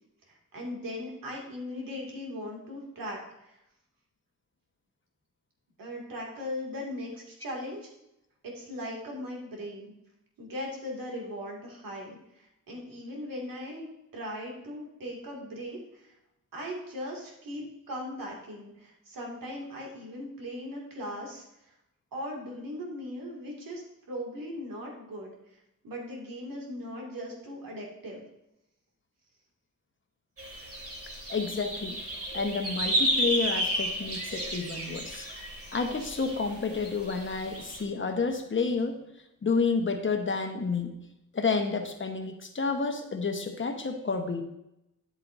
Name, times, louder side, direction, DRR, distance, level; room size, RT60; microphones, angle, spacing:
voice 1, 0.3-3.6 5.8-7.9 8.4-9.9 10.4-13.9 14.1-16.1 16.5-21.7 22.1-25.3 25.8-28.2, left 1 dB, 90° right, -2 dB, 2.4 m, -39 dB
sound 1, 30.4-37.8, equal, 45° right, 2.2 m, -32 dB
voice 2, 31.3-35.3 35.7-39.0 39.4-40.9 41.3-44.4, left 4 dB, 35° left, 5 dB, 1.1 m, -30 dB
10.0 x 7.9 x 2.7 m, 0.85 s
cardioid pair, 85°, 33 cm